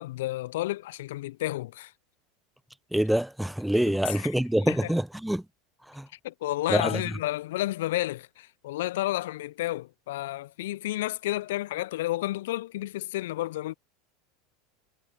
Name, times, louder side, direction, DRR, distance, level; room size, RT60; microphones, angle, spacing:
voice 1, 0.0-1.9 4.0-4.3 4.6-4.9 6.2-13.7, left 16 dB, 65° left, 0.5 m, -31 dB
voice 2, 2.9-5.4 5.9-6.1 6.7-6.9, right 1 dB, 5° right, 0.4 m, -25 dB
hypercardioid pair, 80°, 0 cm